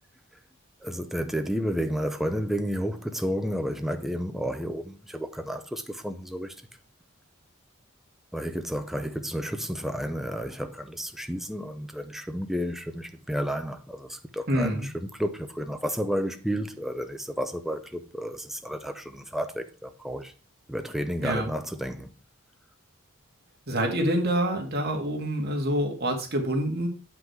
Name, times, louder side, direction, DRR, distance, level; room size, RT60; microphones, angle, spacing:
voice 1, 0.8-6.6 8.3-20.3 20.7-22.1, equal, ahead, 0.6 m, -31 dB
voice 2, 14.5-14.9 21.2-21.5 23.7-26.9, right 1 dB, 50° right, 2.0 m, -26 dB
8.1 x 5.9 x 4.6 m
head